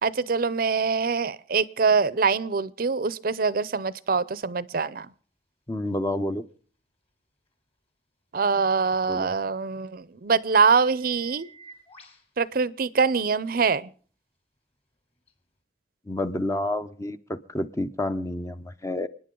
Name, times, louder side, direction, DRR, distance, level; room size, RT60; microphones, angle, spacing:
voice 1, 0.0-5.1 8.3-11.5 12.4-13.9, right 5 dB, 55° right, 0.6 m, -24 dB
voice 2, 5.7-6.4 9.1-9.3 16.1-19.1, left 1 dB, 15° left, 0.7 m, -29 dB
sound 1, 5.9-6.0 9.9-10.0 10.4-12.3 13.5-13.7 15.3-15.4, right 2 dB, 35° left, 3.3 m, -51 dB
29.0 x 10.0 x 3.8 m
head